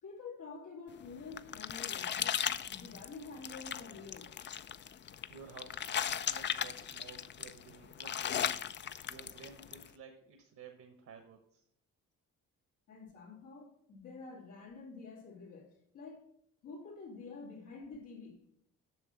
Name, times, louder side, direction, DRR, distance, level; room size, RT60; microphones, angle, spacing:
voice 1, 0.0-4.4 12.9-16.3 16.6-18.4, left 4 dB, 90° left, 2.6 m, -48 dB
sound 1, 1.0-9.9, left 9 dB, 40° left, 0.4 m, -37 dB
voice 2, 5.3-8.6 9.1-11.6, right 6 dB, 65° right, 1.2 m, -54 dB
7.7 x 6.0 x 5.9 m
cardioid pair, 90°, 30 cm